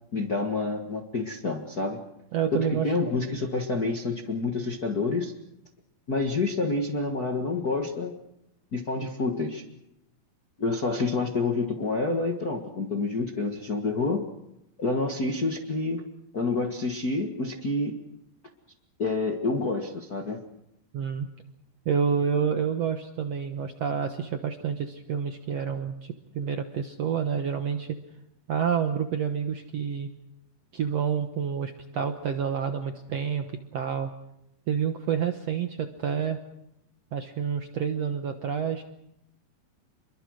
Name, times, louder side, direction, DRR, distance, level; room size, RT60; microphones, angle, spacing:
voice 1, 0.1-2.0 2.5-5.3 6.1-8.1 8.7-9.6 10.6-14.2 14.8-16.0 16.3-17.9 19.0-20.4, left 3 dB, 45° left, 2 dB, 1.2 m, -28 dB
voice 2, 2.3-2.9 20.9-21.3 21.8-28.0 28.5-30.1 30.7-34.1 34.7-36.4 37.1-38.8, right 7 dB, 65° right, 7 dB, 1.7 m, -28 dB
28.0 x 22.5 x 6.4 m, 0.84 s
omnidirectional pair, 4.2 m